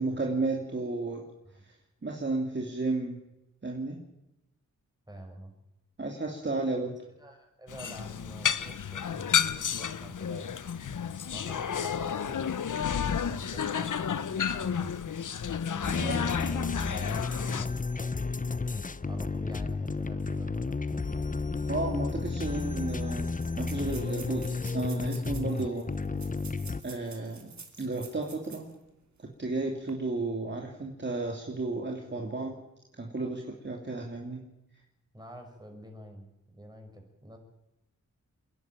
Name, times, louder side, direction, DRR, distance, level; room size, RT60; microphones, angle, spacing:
voice 1, 0.0-1.2 1.6-1.7 2.0-3.2 3.6-4.0 6.0-6.9 16.0-16.3 21.7-25.9 26.8-28.7 29.4-32.6 32.9-34.4, right 2 dB, 35° right, 0 dB, 2.9 m, -33 dB
voice 2, 5.1-5.5 7.2-10.5 11.3-15.0 15.7-18.2 19.1-21.3 35.1-37.4, equal, 15° right, 3 dB, 6.4 m, -47 dB
sound 1, 7.7-17.7, left 7 dB, 70° left, 1.0 m, -31 dB
sound 2, 15.8-26.8, left 4 dB, 25° left, 0.8 m, -32 dB
sound 3, 22.3-22.4 22.5-22.6 23.3-28.8 29.2-29.3 29.7-29.9, right 5 dB, 60° right, 3.1 m, -49 dB
27.0 x 11.5 x 9.2 m, 0.91 s
cardioid pair, 70°, 31 cm